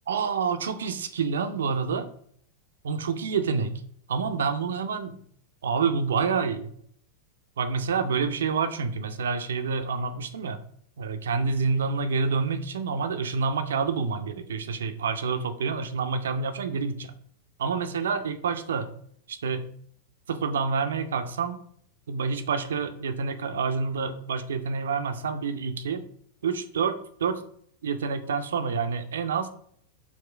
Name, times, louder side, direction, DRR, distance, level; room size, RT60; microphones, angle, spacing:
voice 1, 0.1-2.1 2.8-3.8 4.1-5.2 5.6-6.7 7.6-10.6 11.0-17.1 17.6-18.9 19.3-19.7 20.3-21.6 22.1-26.0 26.4-27.4 27.8-29.5, right 5 dB, 65° right, 9 dB, 0.3 m, -28 dB
4.6 x 2.9 x 2.2 m, 0.63 s
figure-of-eight pair, 90°, 0 cm